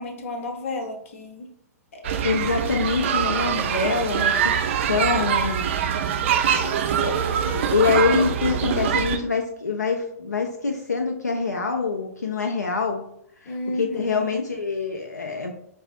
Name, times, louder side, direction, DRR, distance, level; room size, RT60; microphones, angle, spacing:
voice 1, 0.0-1.5 1.9-2.2 6.5-7.7 13.5-14.4, left 2 dB, 55° left, 5 dB, 0.7 m, -34 dB
sound 1, 2.0-9.2, right 8 dB, 45° right, 0.4 m, -24 dB
voice 2, 2.2-5.8 7.0-7.2 7.5-13.0 13.4-15.5, left 4 dB, 85° left, 2 dB, 0.4 m, -25 dB
4.8 x 2.4 x 2.4 m, 0.70 s
figure-of-eight pair, 110°, 9 cm